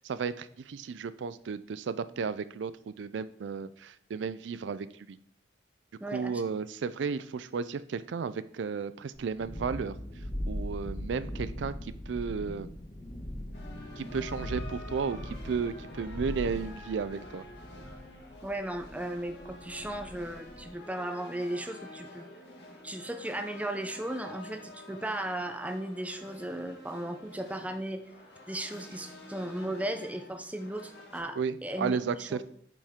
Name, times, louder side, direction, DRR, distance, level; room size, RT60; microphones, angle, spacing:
voice 1, 0.0-5.2 6.1-9.9 10.5-12.7 14.0-17.4 31.4-32.5, right 5 dB, 80° right, 15 dB, 0.4 m, -34 dB
voice 2, 6.0-6.3 18.4-22.3 22.8-28.0 28.5-32.4, right 1 dB, 10° right, 7 dB, 0.5 m, -36 dB
Thunderstorm, 9.1-20.7, equal, 20° left, 1.4 m, -40 dB
sound 1, 13.5-31.2, left 1 dB, 65° left, 1.8 m, -49 dB
8.5 x 5.3 x 3.6 m, 0.63 s
head